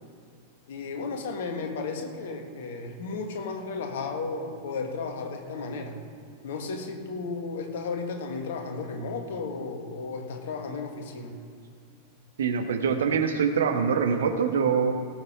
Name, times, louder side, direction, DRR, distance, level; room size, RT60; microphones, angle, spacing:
voice 1, 0.7-6.0 6.4-11.4, left 4 dB, 55° left, 3 dB, 1.8 m, -34 dB
voice 2, 12.4-14.9, right 6 dB, 65° right, 6 dB, 1.2 m, -24 dB
17.5 x 7.6 x 4.8 m, 2.4 s
figure-of-eight pair, 90°, 0 cm